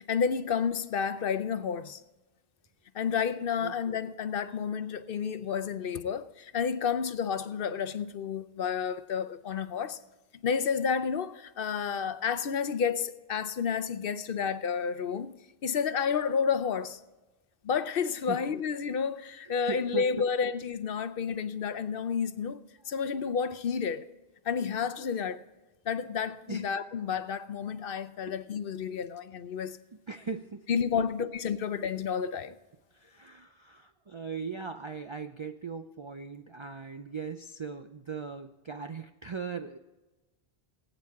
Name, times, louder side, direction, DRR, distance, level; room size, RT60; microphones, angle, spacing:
voice 1, 0.0-2.0 2.9-10.0 10.4-15.3 15.6-17.0 17.6-22.6 22.9-24.1 24.4-25.4 25.9-29.8 30.7-32.5, left 6 dB, 65° left, 0.8 m, -30 dB
voice 2, 19.4-20.3 21.0-21.1 26.5-26.7 28.3-28.4 29.9-31.1 32.9-39.8, right 5 dB, 40° right, 0.5 m, -39 dB
19.5 x 8.9 x 3.6 m
omnidirectional pair, 1.1 m